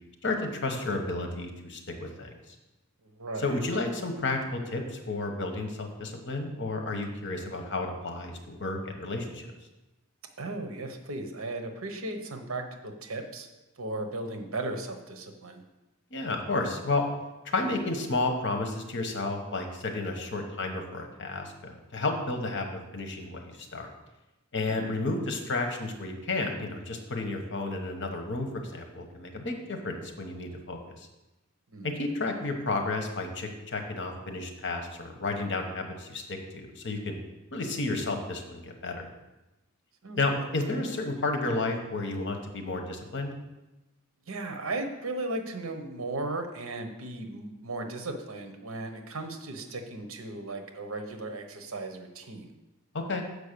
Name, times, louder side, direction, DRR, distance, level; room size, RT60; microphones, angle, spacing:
voice 1, 0.2-2.4 3.4-9.5 16.1-17.0 17.4-23.9 24.5-31.0 31.8-37.1 37.5-39.1 40.2-43.3 52.9-53.2, left 2 dB, 60° left, 4 dB, 1.1 m, -32 dB
voice 2, 3.0-3.6 10.4-13.5 13.8-15.6 24.8-25.0 31.7-32.0 40.0-40.5 44.3-52.5, right 2 dB, 70° right, 6 dB, 1.0 m, -36 dB
6.5 x 5.1 x 6.7 m, 1.0 s
head